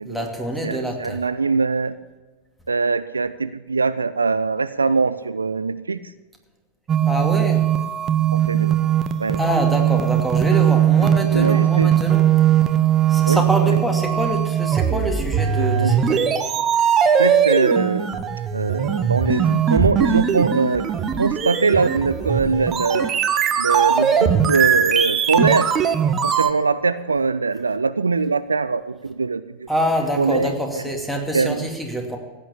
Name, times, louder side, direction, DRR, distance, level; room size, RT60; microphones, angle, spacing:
voice 1, 0.0-1.2 7.0-7.7 9.4-12.2 13.1-16.4 29.7-32.2, equal, ahead, 2 dB, 2.6 m, -25 dB
voice 2, 0.6-1.9 2.7-6.1 8.3-8.9 9.2-9.4 11.3-11.9 13.3-13.8 15.6-16.0 17.1-18.2 18.5-20.9 21.2-23.1 23.6-25.7 26.2-29.7 30.2-30.8 31.3-31.7, right 4 dB, 75° right, 14 dB, 0.5 m, -22 dB
sound 1, 6.9-26.5, right 9 dB, 25° right, 1.1 m, -19 dB
16.0 x 9.1 x 7.2 m, 1.3 s
figure-of-eight pair, 90°, 0 cm